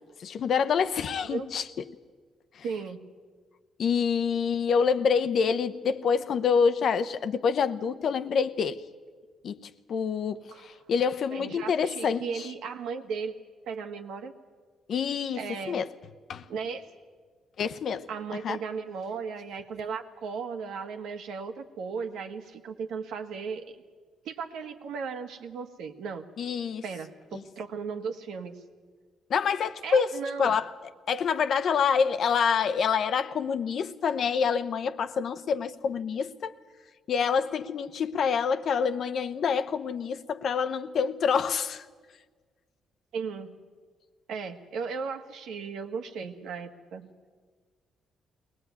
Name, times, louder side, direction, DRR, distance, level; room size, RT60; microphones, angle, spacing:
voice 1, 0.2-1.6 2.5-2.6 3.8-8.8 9.4-12.5 14.9-15.9 16.3-16.5 17.6-18.1 18.4-18.6 26.4-26.8 27.3-27.4 29.3-30.7 31.1-36.5 37.1-41.8, left 6 dB, 60° left, 0.9 m, -27 dB
voice 2, 1.1-1.5 2.6-3.1 10.5-10.7 11.3-13.3 13.7-14.3 15.4-15.9 16.5-16.9 18.1-23.8 24.2-26.3 26.8-28.5 29.8-30.6 43.1-43.6 44.3-47.1, right 5 dB, 80° right, 1.6 m, -36 dB
22.0 x 18.5 x 9.4 m
cardioid pair, 90°, 0 cm